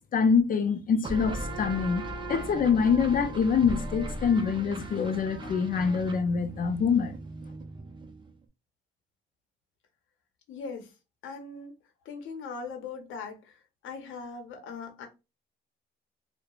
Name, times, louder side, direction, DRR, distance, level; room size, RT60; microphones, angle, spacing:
voice 1, 0.1-7.1, left 6 dB, 45° left, 0.4 m, -25 dB
sound 1, 1.0-8.4, right 2 dB, 25° right, 0.5 m, -38 dB
voice 2, 10.5-10.9 11.2-11.8 12.0-15.1, left 4 dB, 85° left, 0.7 m, -40 dB
2.9 x 2.1 x 2.3 m
cardioid pair, 90°, 20 cm